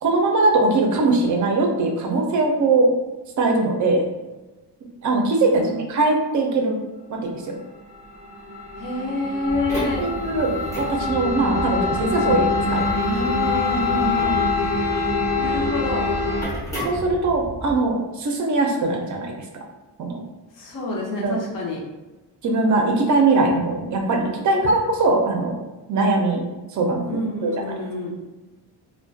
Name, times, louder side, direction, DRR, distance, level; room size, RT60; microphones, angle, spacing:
voice 1, 0.0-2.9 3.4-4.0 5.0-6.8 7.1-7.6 10.0-12.9 16.8-19.3 20.0-20.2 21.2-21.4 22.4-25.6 25.9-26.4 26.7-27.0 27.4-27.7, right 2 dB, 45° right, 2 dB, 0.4 m, -21 dB
voice 2, 5.5-5.8 8.8-10.1 13.1-14.4 15.4-16.1 20.5-21.8 27.1-28.2, left 1 dB, 50° left, -3 dB, 0.6 m, -27 dB
sound 1, 7.9-16.4, left 4 dB, 85° left, 0.9 m, -25 dB
sound 2, 9.5-17.7, right 1 dB, 5° left, 0.6 m, -32 dB
2.3 x 2.1 x 2.6 m, 1.1 s
wide cardioid pair, 160°, 43 cm